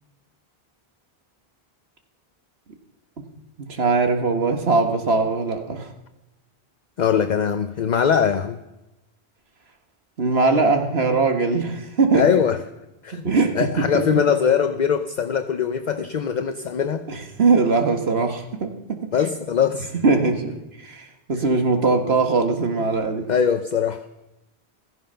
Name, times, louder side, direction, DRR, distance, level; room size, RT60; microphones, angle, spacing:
voice 1, 3.6-5.9 10.2-12.3 13.2-14.2 17.1-19.1 20.0-23.3, right 3 dB, 75° right, 5 dB, 1.9 m, -21 dB
voice 2, 7.0-8.6 12.1-12.6 13.0-13.2 13.5-17.1 19.1-19.9 23.3-24.0, left 7 dB, 50° left, 9 dB, 0.8 m, -21 dB
16.0 x 14.0 x 5.7 m, 0.96 s
omnidirectional pair, 1.1 m